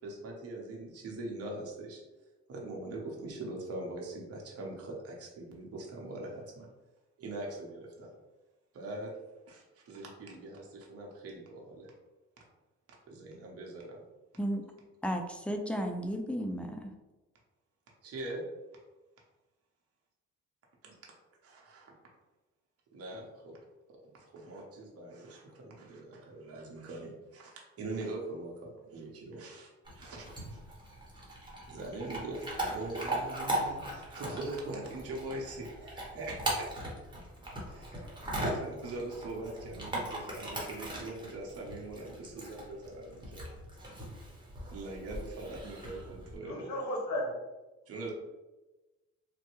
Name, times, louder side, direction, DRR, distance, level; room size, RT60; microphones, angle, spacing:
voice 1, 0.0-2.0 2.5-6.7 7.2-8.1 8.7-9.1 9.5-11.9 13.1-14.0 18.0-18.4 20.8-21.0 21.4-21.9 22.9-23.6 24.0-30.6 31.7-36.7 37.7-38.1 38.4-43.4 44.7-46.7 47.9-48.1, right 2 dB, 50° right, -2 dB, 0.8 m, -42 dB
voice 2, 15.0-16.9, equal, 5° left, 4 dB, 0.3 m, -34 dB
Chewing mastication / Dog, 29.8-46.4, right 1 dB, 15° right, 1.1 m, -39 dB
voice 3, 46.4-47.4, left 1 dB, 65° left, 0 dB, 1.0 m, -34 dB
3.2 x 2.2 x 3.0 m, 1.1 s
cardioid pair, 90°, 30 cm